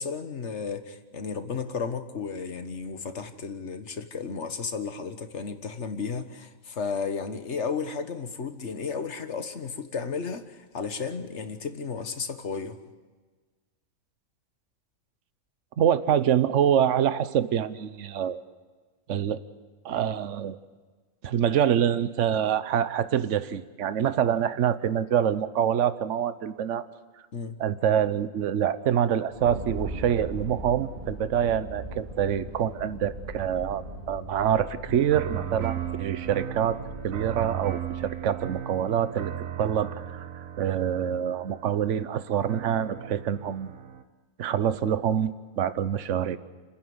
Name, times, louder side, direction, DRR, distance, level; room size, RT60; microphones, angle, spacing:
voice 1, 0.0-12.8 27.3-27.6, left 5 dB, 60° left, 9 dB, 1.6 m, -33 dB
voice 2, 15.8-18.4 19.1-19.4 19.8-20.6 21.2-26.9 27.6-39.3 39.6-40.3 40.6-43.7 44.4-46.4, right 9 dB, 65° right, 13 dB, 1.2 m, -26 dB
sound 1, 29.3-38.9, right 1 dB, 35° right, 2.8 m, -40 dB
sound 2, 34.9-44.0, right 10 dB, 85° right, 1.5 m, -36 dB
30.0 x 10.5 x 9.5 m, 1.4 s
omnidirectional pair, 1.4 m